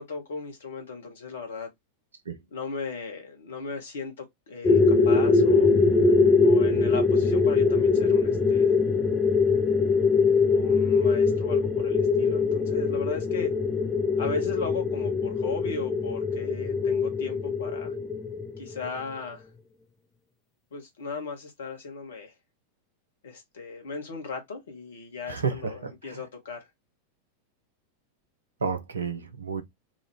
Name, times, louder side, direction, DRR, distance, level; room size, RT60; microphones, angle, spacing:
voice 1, 0.0-1.7 2.5-5.7 6.4-8.7 10.5-13.5 14.2-17.9 18.6-19.5 20.7-22.3 23.2-26.7, left 4 dB, 65° left, 1.4 m, -37 dB
sound 1, 4.6-18.9, left 4 dB, 15° left, 0.8 m, -22 dB
voice 2, 25.3-26.2 28.6-29.6, right 5 dB, 75° right, 0.8 m, -31 dB
3.9 x 2.5 x 3.2 m
figure-of-eight pair, 90°, 0 cm